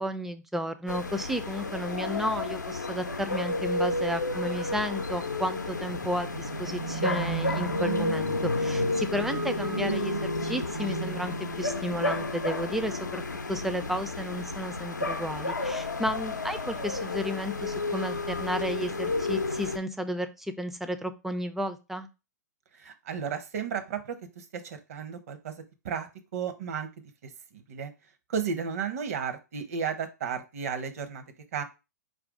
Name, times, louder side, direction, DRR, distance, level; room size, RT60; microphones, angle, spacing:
voice 1, 0.0-10.1 10.4-13.2 13.5-22.1, equal, 5° right, 9 dB, 0.3 m, -33 dB
sound 1, 0.9-19.8, left 3 dB, 90° left, 0.5 m, -31 dB
sound 2, 6.0-12.4, right 7 dB, 75° right, 1.0 m, -36 dB
voice 2, 22.8-24.0 24.4-25.5 25.8-26.9 27.2-27.9 28.3-31.2 31.5-31.6, right 6 dB, 55° right, 8 dB, 0.8 m, -33 dB
4.6 x 2.6 x 3.6 m, 0.29 s
figure-of-eight pair, 110°, 10 cm